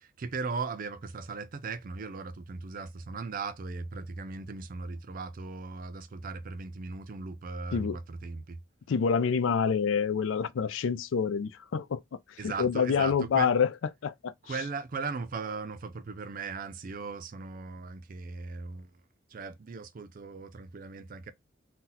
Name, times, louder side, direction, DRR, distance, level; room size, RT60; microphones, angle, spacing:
voice 1, 0.0-8.6 12.4-13.5 14.4-18.9 19.3-21.3, right 4 dB, 45° right, 0.4 m, -38 dB
voice 2, 8.9-12.0 12.4-13.7 14.0-14.3, left 6 dB, 80° left, 0.4 m, -27 dB
2.8 x 2.2 x 3.8 m
head